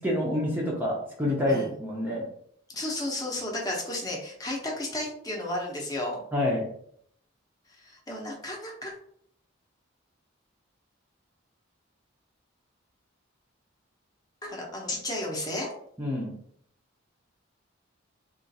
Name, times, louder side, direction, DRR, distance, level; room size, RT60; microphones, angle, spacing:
voice 1, 0.0-2.3 6.3-6.7 16.0-16.3, left 1 dB, 10° right, -4 dB, 0.7 m, -27 dB
voice 2, 2.7-6.2 7.8-8.9 14.4-15.7, left 1 dB, 20° left, -2 dB, 0.8 m, -33 dB
3.6 x 2.5 x 4.0 m, 0.65 s
head